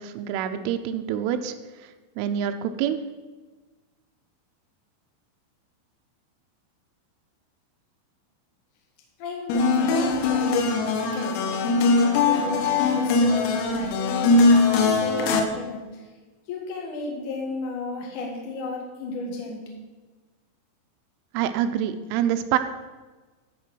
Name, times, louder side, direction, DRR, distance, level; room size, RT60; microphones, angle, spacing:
voice 1, 0.0-1.5 2.2-3.0 21.3-22.6, right 10 dB, 85° right, 8 dB, 3.0 m, -26 dB
voice 2, 9.2-11.8 12.3-16.1 16.5-19.6, left 3 dB, 55° left, -1 dB, 2.4 m, -33 dB
sound 1, 9.5-15.4, left 3 dB, 90° left, 3.7 m, -21 dB
14.0 x 4.9 x 6.1 m, 1.3 s
omnidirectional pair, 5.8 m